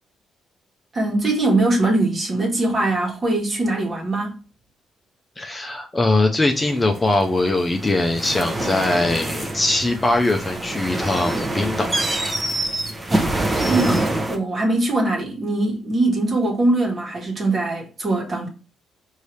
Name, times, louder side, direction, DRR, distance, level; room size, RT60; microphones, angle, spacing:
voice 1, 0.9-4.4 13.1-13.3 13.6-18.5, right 2 dB, 40° right, 1.5 m, -22 dB
voice 2, 5.4-11.9, left 2 dB, 20° left, 0.6 m, -21 dB
sound 1, 6.6-14.4, right 1 dB, 20° right, 0.9 m, -25 dB
4.6 x 2.8 x 3.2 m
cardioid pair, 90°, 0 cm